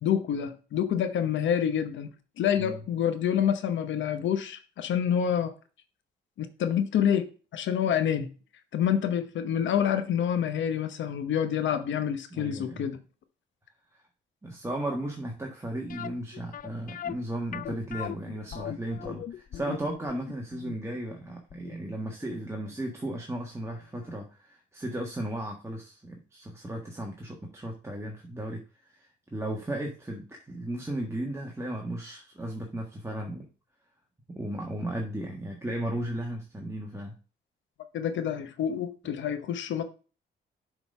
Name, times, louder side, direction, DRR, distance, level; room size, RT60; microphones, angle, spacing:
voice 1, 0.0-5.5 6.4-8.3 8.7-13.0 37.9-39.8, left 9 dB, 70° left, 0.9 m, -27 dB
voice 2, 12.3-12.9 14.4-33.4 34.3-37.1, right 1 dB, 15° right, 1.4 m, -35 dB
sound 1, 15.9-22.8 23.0-23.1 23.7-23.8 24.1-24.2, left 10 dB, 45° left, 0.4 m, -39 dB
7.2 x 4.0 x 5.4 m
cardioid pair, 90°, 20 cm